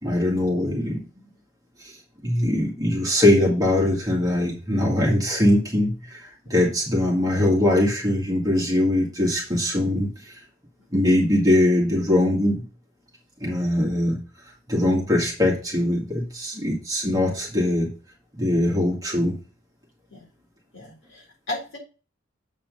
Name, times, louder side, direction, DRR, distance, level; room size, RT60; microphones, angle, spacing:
voice 1, 0.0-1.0 1.8-2.0 2.2-10.4 10.9-12.6 13.4-14.2 14.7-17.9 18.4-19.3, left 1 dB, 15° right, -2 dB, 2.0 m, -22 dB
voice 2, 20.7-21.8, left 2 dB, 55° left, -3 dB, 3.7 m, -35 dB
7.7 x 4.3 x 5.3 m, 0.35 s
head